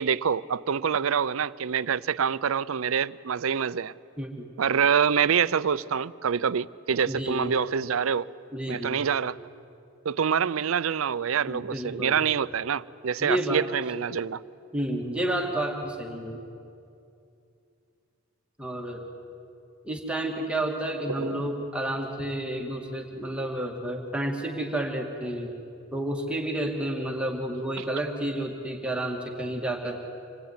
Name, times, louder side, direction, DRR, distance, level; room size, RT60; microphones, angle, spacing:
voice 1, 0.0-3.9 4.6-8.3 8.7-9.4 10.0-14.4 21.2-21.5, right 7 dB, 80° right, 0.5 m, -26 dB
voice 2, 4.2-4.5 7.1-7.6 8.5-9.0 11.5-12.2 13.2-13.6 14.7-16.4 18.6-19.0 19.8-25.5 25.9-30.0, right 1 dB, 5° right, 2.1 m, -30 dB
26.5 x 19.5 x 9.6 m
head